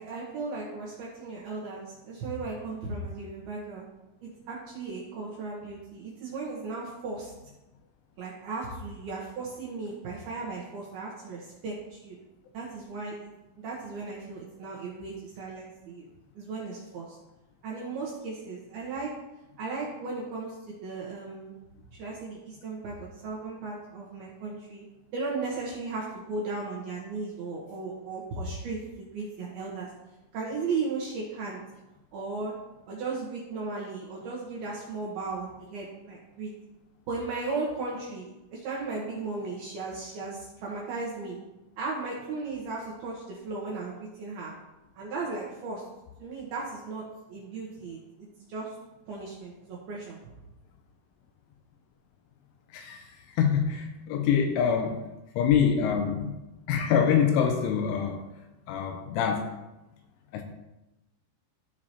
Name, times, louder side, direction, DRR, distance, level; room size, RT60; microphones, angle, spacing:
voice 1, 0.0-3.8 4.2-7.3 8.2-12.2 12.5-13.3 13.6-16.1 16.4-17.2 17.6-19.1 19.6-21.5 22.0-24.9 25.1-29.9 30.3-31.6 32.1-32.5 32.9-36.5 37.1-41.4 41.8-44.5 45.0-45.8 46.2-47.0 47.3-48.7 49.1-50.2, right 3 dB, 70° right, -5 dB, 2.4 m, -36 dB
voice 2, 52.7-53.1 53.4-55.0 55.4-56.4 56.7-58.2 58.7-59.5 60.3-60.4, left 7 dB, 80° left, 4 dB, 2.9 m, -25 dB
14.0 x 4.8 x 2.9 m, 0.98 s
omnidirectional pair, 5.8 m